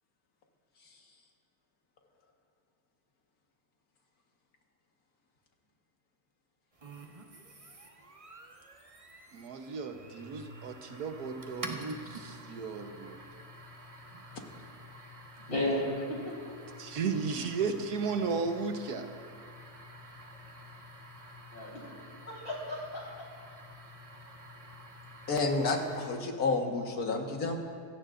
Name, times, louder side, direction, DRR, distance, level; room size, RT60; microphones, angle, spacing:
sound 1, 6.8-26.4, right 1 dB, 25° right, 1.0 m, -49 dB
voice 1, 9.3-13.1 16.8-19.1, right 5 dB, 85° right, 6 dB, 1.5 m, -34 dB
voice 2, 15.5-16.5 21.5-21.8 22.3-23.2, left 1 dB, 40° left, -5 dB, 4.6 m, -34 dB
voice 3, 25.3-27.6, left 3 dB, 75° left, 2 dB, 2.0 m, -30 dB
25.0 x 17.0 x 2.6 m, 2.1 s
omnidirectional pair, 1.6 m